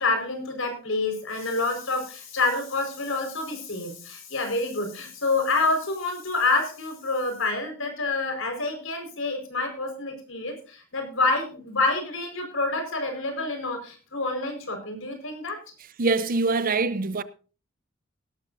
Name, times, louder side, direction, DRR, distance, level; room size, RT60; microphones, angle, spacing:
voice 1, 0.0-15.6, left 3 dB, 65° left, 4.9 m, -27 dB
voice 2, 16.0-17.2, right 3 dB, 45° right, 0.7 m, -24 dB
17.5 x 13.0 x 2.6 m
head